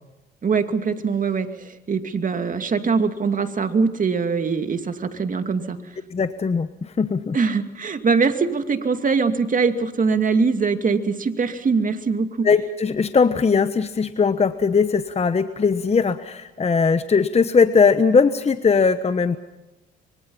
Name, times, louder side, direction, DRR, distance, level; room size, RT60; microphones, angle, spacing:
voice 1, 0.4-5.8 7.3-12.5, right 5 dB, 40° right, 8 dB, 2.5 m, -22 dB
voice 2, 6.1-7.4 12.4-19.4, left 5 dB, 30° left, 11 dB, 1.2 m, -19 dB
25.0 x 24.0 x 5.6 m, 1.0 s
supercardioid pair, 65°, 21 cm